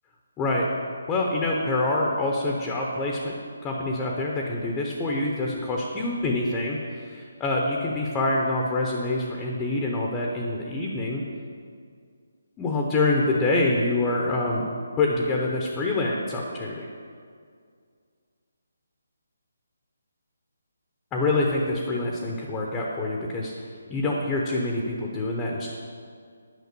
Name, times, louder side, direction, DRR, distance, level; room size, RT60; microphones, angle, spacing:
voice 1, 0.4-0.7 1.1-3.3 3.6-11.2 12.6-14.6 15.0-16.9 21.1-23.5 23.9-25.7, left 2 dB, 10° left, -1 dB, 0.8 m, -26 dB
9.6 x 5.9 x 6.7 m, 2.2 s
hypercardioid pair, 165°, 0 cm